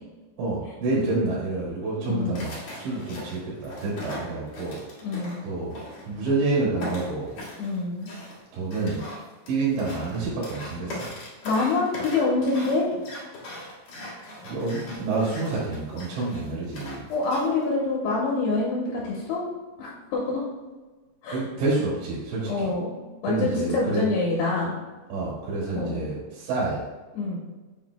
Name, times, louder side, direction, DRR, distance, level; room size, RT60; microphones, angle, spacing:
voice 1, 0.4-4.8 5.4-5.8 6.1-7.4 8.5-9.0 9.5-11.1 14.4-17.1 21.3-22.7 23.2-24.1 25.1-26.9, right 3 dB, 75° right, -7 dB, 3.9 m, -28 dB
voice 2, 2.0-2.5 5.0-5.4 7.6-8.1 11.4-12.9 17.1-19.4 19.8-20.4 21.2-21.4 22.4-23.0 23.2-24.8 25.7-26.1 27.1-27.4, left 3 dB, 75° left, -4 dB, 2.8 m, -26 dB
sound 1, 2.3-6.4 6.8-17.6, left 1 dB, 50° left, 1.8 m, -40 dB
7.3 x 7.2 x 2.2 m, 1.2 s
omnidirectional pair, 5.2 m